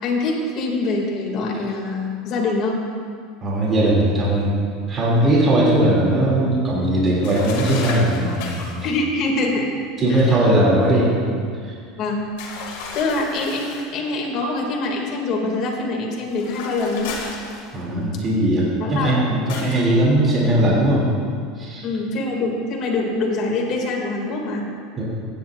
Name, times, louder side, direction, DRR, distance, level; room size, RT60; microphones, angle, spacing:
voice 1, 0.0-2.8 8.8-9.7 10.1-10.5 12.0-12.3 12.9-17.1 18.8-19.4 21.8-24.7, left 2 dB, 45° left, -1 dB, 2.6 m, -24 dB
voice 2, 3.4-4.5 4.9-8.6 10.0-11.3 11.7-11.8 17.7-21.0 21.6-21.8 25.0-25.1, right 1 dB, 30° right, -5 dB, 2.9 m, -19 dB
sound 1, 7.2-8.8 12.4-13.9 16.3-18.0 19.5-19.9, left 4 dB, 75° left, 2.3 m, -33 dB
15.5 x 10.0 x 2.6 m, 2.2 s
supercardioid pair, 120°, 0 cm